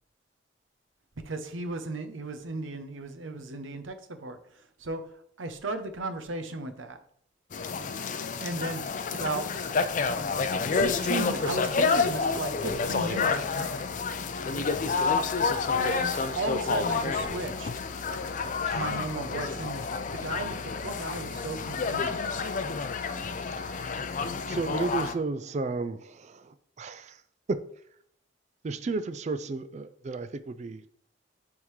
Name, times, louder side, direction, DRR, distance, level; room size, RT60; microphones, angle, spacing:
voice 1, 1.2-5.0 5.4-7.0 8.4-8.8 9.1-9.5 10.8-13.8 15.7-17.7 18.7-19.8 20.1-22.3, right 3 dB, 85° right, 0.8 m, -35 dB
sound 1, 7.5-25.1, left 5 dB, 40° left, 0.4 m, -29 dB
voice 2, 23.6-24.0 24.5-27.2 27.5-27.6 28.6-30.8, right 3 dB, 35° right, 0.3 m, -33 dB
9.9 x 3.6 x 3.2 m
head